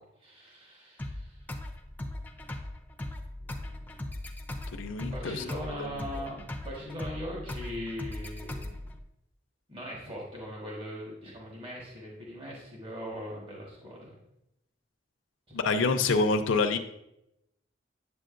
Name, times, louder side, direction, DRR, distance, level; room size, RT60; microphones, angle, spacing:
voice 1, 0.2-1.4 5.0-8.8 9.7-14.1 15.5-16.0, equal, 30° right, -4 dB, 1.5 m, -40 dB
sound 1, 1.0-9.0, left 1 dB, 10° left, 0.4 m, -39 dB
voice 2, 4.7-5.4 5.8-5.9 15.5-16.8, left 3 dB, 90° left, 7 dB, 0.5 m, -26 dB
8.1 x 7.6 x 2.5 m, 0.85 s
head